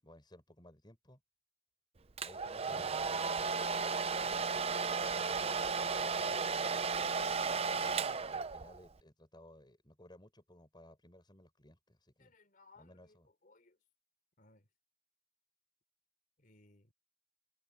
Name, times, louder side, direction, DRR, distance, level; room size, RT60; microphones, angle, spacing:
voice 1, 0.0-1.2 2.2-6.7 8.2-12.3 12.8-13.3, left 1 dB, 25° left, 7.3 m, -59 dB
Domestic sounds home sounds, 2.2-8.9, right 5 dB, 35° right, 0.7 m, -34 dB
voice 2, 12.2-13.8 14.4-14.7 16.4-16.9, left 3 dB, 50° left, 3.8 m, -64 dB
open air
head